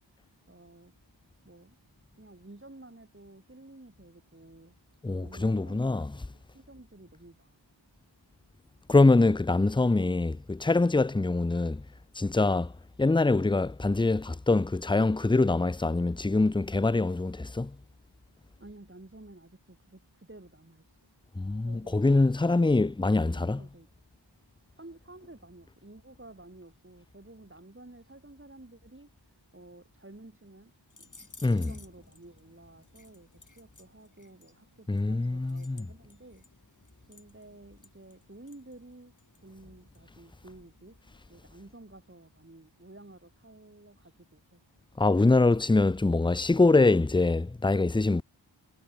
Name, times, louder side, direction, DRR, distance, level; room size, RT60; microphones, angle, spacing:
voice 1, 0.5-0.9 1.4-1.8 2.2-4.7 5.2-7.6 18.6-21.0 21.6-23.9 24.8-29.1 29.5-30.7 31.0-31.1 31.7-36.4 37.1-39.1 39.4-41.0 41.3-44.6, right 2 dB, 25° right, 5.7 m, -52 dB
voice 2, 5.0-6.1 8.9-11.8 12.2-12.7 13.0-17.8 21.4-23.7 31.4-31.8 34.9-35.9 45.0-48.2, left 3 dB, 10° left, 0.5 m, -24 dB
sound 1, 30.9-41.3, left 3 dB, 40° left, 4.0 m, -58 dB
wide cardioid pair, 70°, 46 cm